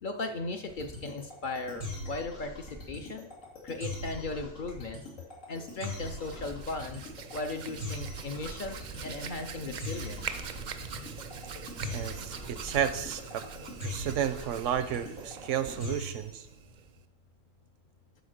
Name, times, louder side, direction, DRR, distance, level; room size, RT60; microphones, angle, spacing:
voice 1, 0.0-3.3 3.6-5.0 5.5-10.3, left 3 dB, 50° left, 6 dB, 0.6 m, -37 dB
sound 1, 0.7-16.3, left 1 dB, 90° left, 2.9 m, -40 dB
Hands, 5.6-17.0, right 6 dB, 55° right, 0.5 m, -43 dB
voice 2, 11.9-13.4 13.8-16.5, right 9 dB, 80° right, 12 dB, 1.0 m, -32 dB
7.9 x 4.8 x 6.5 m, 0.85 s
omnidirectional pair, 1.3 m